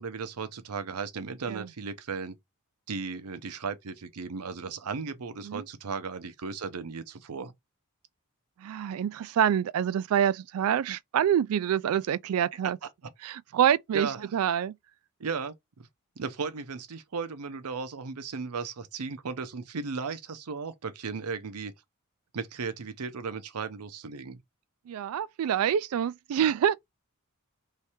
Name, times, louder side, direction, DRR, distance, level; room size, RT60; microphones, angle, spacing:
voice 1, 0.0-2.3 2.9-7.5 13.9-14.3 15.2-15.9 16.2-21.7 22.3-24.4, right 5 dB, 90° right, 0.7 m, -36 dB
voice 2, 8.6-12.8 13.2-14.8 24.9-26.8, right 9 dB, 70° right, 0.3 m, -26 dB
3.2 x 3.2 x 4.3 m
head